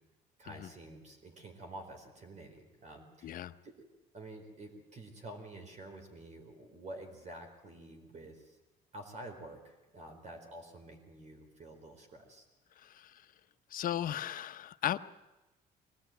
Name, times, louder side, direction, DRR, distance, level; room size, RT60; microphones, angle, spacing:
voice 1, 0.4-3.9 4.1-8.6 8.9-12.4, right 1 dB, 45° right, 4 dB, 4.3 m, -49 dB
voice 2, 3.2-3.5 12.8-13.2 13.7-15.0, left 11 dB, 55° left, 10 dB, 0.9 m, -36 dB
23.5 x 18.5 x 9.1 m, 1.1 s
cardioid pair, 110°, 17 cm